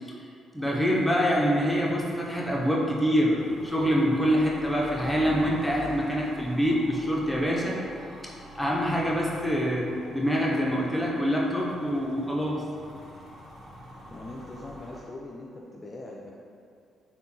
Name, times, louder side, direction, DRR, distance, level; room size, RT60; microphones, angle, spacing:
voice 1, 0.5-7.8 8.5-12.6, equal, 5° left, -4 dB, 0.7 m, -25 dB
sound 1, 0.6-15.0, equal, 60° right, 0.9 m, -46 dB
voice 2, 14.1-16.3, left 2 dB, 35° left, -3 dB, 0.3 m, -41 dB
3.5 x 2.2 x 2.7 m, 2.4 s
hypercardioid pair, 45°, 0 cm